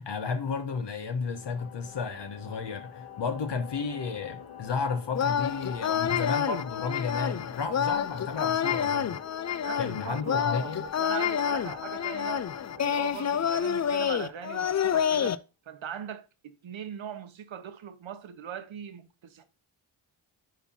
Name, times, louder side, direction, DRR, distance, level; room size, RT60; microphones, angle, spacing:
voice 1, 0.0-9.2 9.8-10.8, left 5 dB, 55° left, 1.3 m, -33 dB
sound 1, 1.3-14.9, left 8 dB, 90° left, 2.7 m, -47 dB
sound 2, 5.1-15.4, left 8 dB, 35° left, 0.5 m, -28 dB
voice 2, 9.6-12.5 12.8-16.3 16.6-19.4, right 8 dB, 65° right, 1.3 m, -40 dB
10.0 x 4.1 x 4.3 m
cardioid pair, 70°, 50 cm